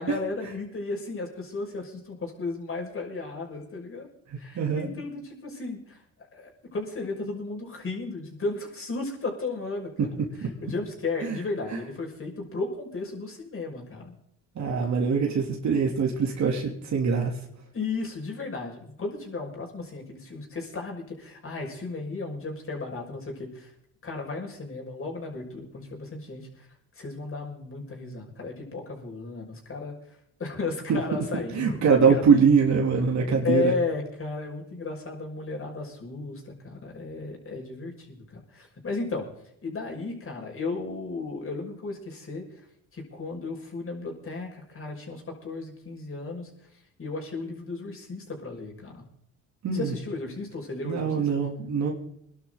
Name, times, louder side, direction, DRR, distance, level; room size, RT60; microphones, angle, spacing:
voice 1, 0.0-4.1 4.4-10.1 10.4-14.2 17.7-23.7 24.0-26.7 26.9-32.3 33.4-39.3 39.6-42.6 42.9-49.0 49.7-51.4, left 3 dB, 40° left, 0 dB, 6.0 m, -34 dB
voice 2, 4.3-4.9 10.0-10.5 11.2-11.4 14.5-17.3 30.9-31.0 31.5-33.7 49.6-50.0 50.8-51.9, right 5 dB, 60° right, 0 dB, 3.0 m, -23 dB
23.0 x 12.0 x 4.0 m, 0.74 s
supercardioid pair, 70°, 32 cm